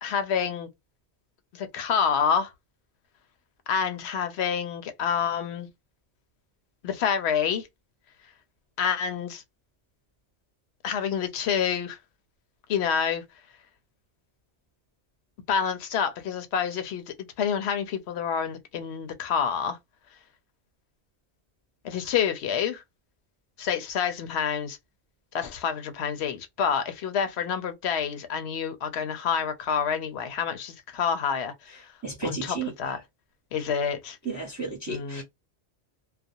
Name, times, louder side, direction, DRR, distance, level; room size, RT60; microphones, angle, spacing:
voice 1, 0.0-0.7 1.5-2.5 3.7-5.7 6.8-7.7 8.8-9.4 10.8-12.0 12.7-13.2 15.5-19.8 21.8-22.8 23.6-24.8 25.3-31.9 32.2-33.0 33.5-34.2 34.9-35.2, left 7 dB, 70° left, 0.9 m, -28 dB
voice 2, 32.0-32.7 34.2-35.2, right 3 dB, 15° right, 0.9 m, -33 dB
2.4 x 2.2 x 2.6 m
omnidirectional pair, 1.2 m